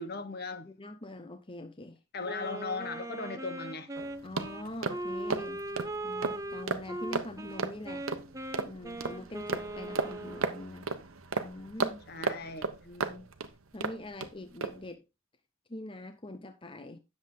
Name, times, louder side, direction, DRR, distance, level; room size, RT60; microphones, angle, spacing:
voice 1, 0.0-0.7 2.1-3.9 12.1-12.8, left 3 dB, 50° left, 1.2 m, -37 dB
voice 2, 0.6-2.0 4.2-5.6 6.0-8.1 8.6-10.9 11.4-12.0 12.8-13.3 13.7-15.0 15.7-17.0, left 1 dB, 25° left, 0.8 m, -43 dB
Wind instrument woodwind instrument, 2.2-10.7, right 1 dB, 15° right, 1.0 m, -39 dB
sound 1, 3.9-14.3 14.6-14.8, right 4 dB, 80° right, 1.2 m, -35 dB
10.5 x 7.5 x 3.8 m
head